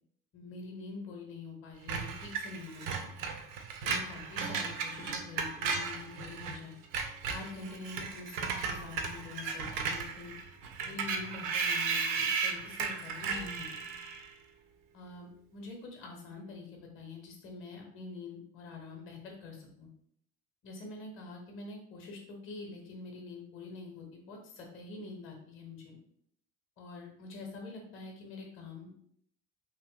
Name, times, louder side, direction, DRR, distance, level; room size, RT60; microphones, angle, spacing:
voice 1, 0.3-3.1 3.8-6.7 7.3-10.3 10.8-13.7 14.9-19.9 20.6-26.0 26.8-29.0, left 3 dB, 30° left, 1 dB, 0.7 m, -45 dB
Screech, 1.9-6.6 6.8-14.3, right 5 dB, 50° right, 0.5 m, -35 dB
2.8 x 2.5 x 2.2 m, 0.69 s
figure-of-eight pair, 60°, 43 cm